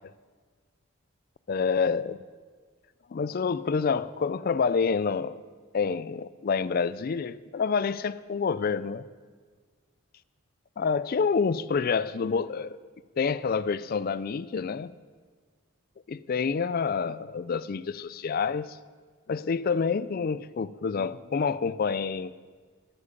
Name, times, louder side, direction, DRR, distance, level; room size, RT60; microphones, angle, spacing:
voice 1, 1.5-2.2 3.1-5.4 5.7-9.0 10.8-12.8 13.2-14.9 16.1-18.8 19.3-22.3, left 5 dB, 40° left, 0.3 m, -28 dB
12.5 x 8.3 x 7.2 m
head